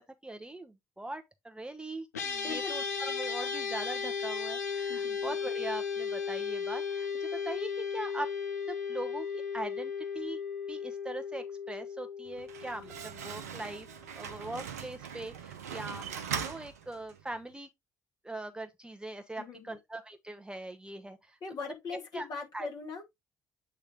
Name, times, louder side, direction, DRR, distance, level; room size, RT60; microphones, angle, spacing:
voice 1, 0.2-8.3 8.7-10.4 10.7-17.7 18.2-21.6 21.9-22.3 22.5-22.7, right 2 dB, 10° right, 0.8 m, -41 dB
sound 1, 2.1-13.6, left 6 dB, 85° left, 0.6 m, -35 dB
voice 2, 2.4-2.7 4.9-5.2 19.4-19.8 21.4-23.1, left 4 dB, 55° left, 2.1 m, -40 dB
Slam, 12.3-17.4, right 7 dB, 80° right, 0.7 m, -41 dB
8.1 x 3.1 x 3.7 m
figure-of-eight pair, 45°, 8 cm